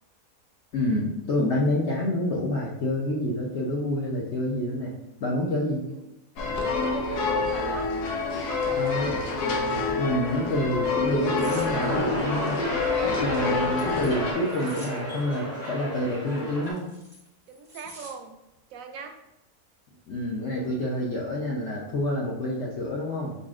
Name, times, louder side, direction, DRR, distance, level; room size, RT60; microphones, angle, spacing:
voice 1, 0.7-4.9 5.2-5.9 8.8-9.1 10.0-12.6 13.0-16.9 20.1-23.3, left 1 dB, 60° left, -3 dB, 0.8 m, -28 dB
sound 1, 6.4-14.3, left 3 dB, 90° left, 1.2 m, -27 dB
voice 2, 6.8-7.9 8.2-9.1 17.5-18.3 18.7-19.2, right 6 dB, 70° right, 6 dB, 0.9 m, -40 dB
sound 2, 11.4-16.7, right 1 dB, 30° left, 1.3 m, -33 dB
sound 3, 11.4-11.7 13.1-15.0 16.4-18.1 18.5-18.8, equal, 20° right, 0.7 m, -47 dB
4.6 x 4.1 x 2.4 m, 0.92 s
omnidirectional pair, 1.7 m